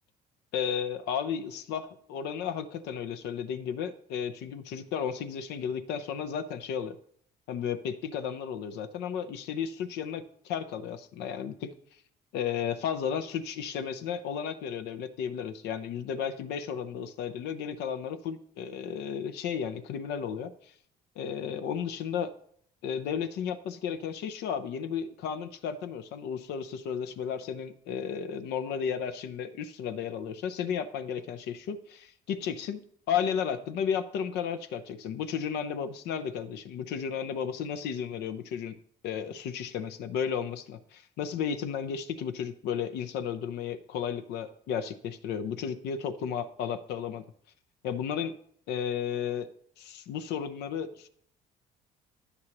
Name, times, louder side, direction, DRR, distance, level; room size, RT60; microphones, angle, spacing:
voice 1, 0.5-7.0 7.5-11.7 12.3-20.7 21.2-22.3 22.8-32.8 33.1-38.8 39.0-47.2 47.8-48.4 48.7-49.5 49.8-51.1, left 7 dB, 80° left, 10 dB, 0.6 m, -33 dB
9.7 x 7.8 x 2.9 m, 0.63 s
cardioid pair, 110°, 17 cm